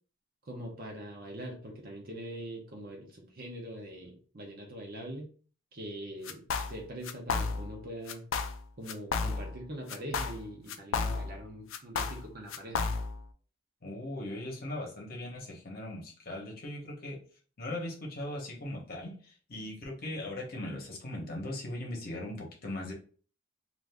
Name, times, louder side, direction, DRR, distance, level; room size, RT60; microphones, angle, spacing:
voice 1, 0.5-5.3 5.7-6.4 6.7-8.2 8.8-12.8, right 1 dB, 45° right, 0 dB, 0.6 m, -42 dB
sound 1, 6.3-6.8 7.0-7.8 8.1-8.6 8.9-9.6 9.9-11.4 11.7-13.2, left 4 dB, 65° left, 0.4 m, -32 dB
voice 2, 13.8-17.2 17.6-22.9, left 1 dB, 45° left, -1 dB, 0.9 m, -39 dB
2.5 x 2.5 x 3.4 m, 0.41 s
head